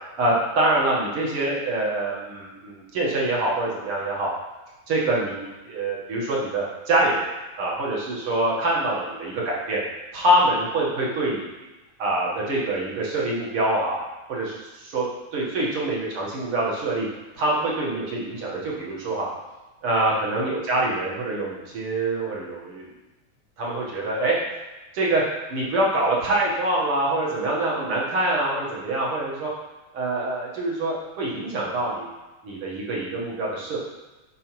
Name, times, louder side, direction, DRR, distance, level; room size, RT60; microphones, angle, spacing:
voice 1, 0.2-4.3 4.9-7.3 7.6-9.8 10.1-11.4 12.0-14.0 14.3-15.1 15.3-17.1 17.4-19.3 19.8-22.8 23.6-24.4 24.9-25.2 25.5-29.5 29.9-32.1 32.4-33.8, right 1 dB, 55° right, -4 dB, 1.9 m, -25 dB
10.5 x 4.8 x 3.1 m, 1.1 s
omnidirectional pair, 3.5 m